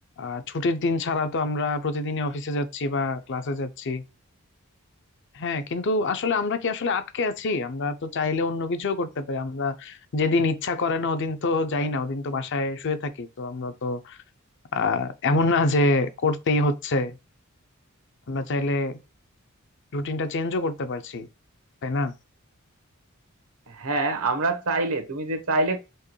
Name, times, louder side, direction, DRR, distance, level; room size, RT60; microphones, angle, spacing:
voice 1, 0.2-4.0 5.3-14.2 14.7-17.2 18.3-19.0 19.9-21.3 21.8-22.1, left 3 dB, 60° left, 0.6 m, -26 dB
voice 2, 23.7-25.8, right 2 dB, 85° right, 1.1 m, -25 dB
4.5 x 2.9 x 3.1 m
head